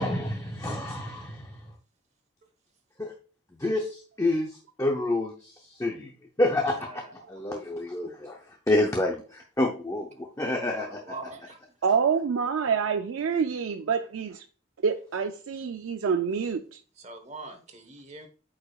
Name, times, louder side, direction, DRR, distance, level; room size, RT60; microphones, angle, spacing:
voice 1, 0.0-1.6 3.0-3.1 3.6-6.1 6.4-11.2, left 1 dB, 15° left, 0.6 m, -29 dB
voice 2, 10.8-11.6 17.0-18.3, right 3 dB, 35° right, 1.1 m, -42 dB
voice 3, 11.8-14.4 14.8-16.8, right 6 dB, 85° right, 0.4 m, -27 dB
8.6 x 4.9 x 2.4 m
head